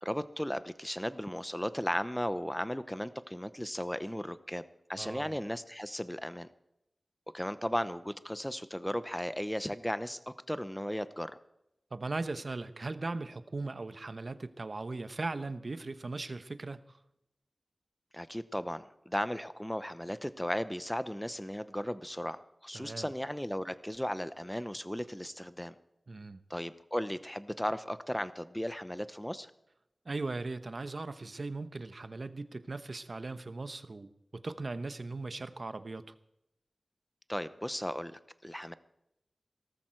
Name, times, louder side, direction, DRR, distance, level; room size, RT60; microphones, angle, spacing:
voice 1, 0.0-4.6 4.9-6.5 7.3-11.4 18.1-25.7 26.5-29.5 37.3-38.7, equal, 5° left, 13 dB, 0.7 m, -36 dB
voice 2, 5.0-5.4 11.9-17.0 22.7-23.1 26.1-26.4 30.0-36.1, right 3 dB, 55° right, 11 dB, 0.9 m, -38 dB
18.0 x 14.0 x 4.6 m, 0.84 s
wide cardioid pair, 80°, 0 cm